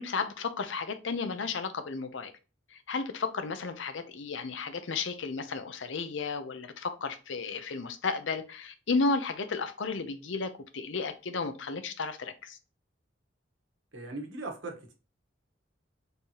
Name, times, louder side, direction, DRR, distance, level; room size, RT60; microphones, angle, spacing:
voice 1, 0.0-2.3 2.7-12.6, left 4 dB, 75° left, 0.6 m, -33 dB
voice 2, 13.9-14.9, right 2 dB, 90° right, 1.1 m, -39 dB
4.5 x 3.4 x 2.8 m
head